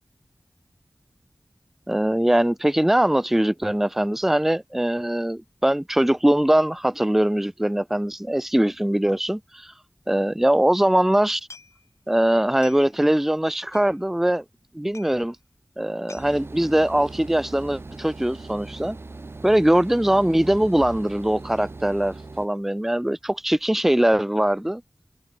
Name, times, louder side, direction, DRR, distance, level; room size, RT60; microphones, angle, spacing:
voice 1, 1.9-9.7 10.1-11.4 12.1-14.4 14.7-15.4 15.8-19.0 19.4-24.8, right 1 dB, 5° right, 0.4 m, -21 dB
sound 1, 11.5-12.1 12.4-13.1 13.4-13.5 13.7-14.3 14.6-14.7 14.9-15.2 15.6-15.7 15.9-16.3 17.1-17.4 17.7-18.1 18.4-18.5, left 3 dB, 80° left, 3.6 m, -48 dB
sound 2, 16.1-22.5, right 3 dB, 55° right, 1.6 m, -39 dB
wide cardioid pair, 70°, 5 cm